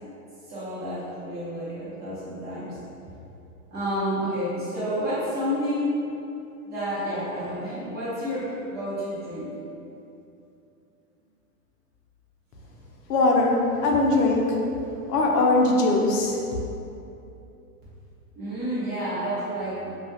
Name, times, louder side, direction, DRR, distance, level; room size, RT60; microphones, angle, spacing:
voice 1, 0.5-2.8 3.7-6.0 6.6-9.5 18.3-20.0, equal, 20° right, -11 dB, 0.8 m, -30 dB
voice 2, 13.1-14.6 15.1-16.4, left 2 dB, 80° left, 0 dB, 0.6 m, -21 dB
2.4 x 2.3 x 2.7 m, 2.8 s
hypercardioid pair, 140°, 46 cm